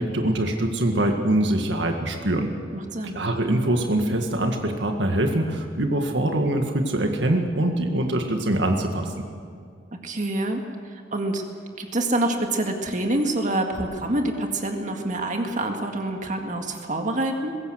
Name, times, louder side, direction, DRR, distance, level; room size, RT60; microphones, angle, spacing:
voice 1, 0.0-2.5 3.1-9.1, right 1 dB, 80° right, 4 dB, 1.9 m, -23 dB
voice 2, 2.2-3.2 10.0-10.6 10.9-11.4 11.8-17.6, right 1 dB, 45° right, 3 dB, 2.0 m, -26 dB
21.5 x 16.5 x 7.9 m, 2.2 s
head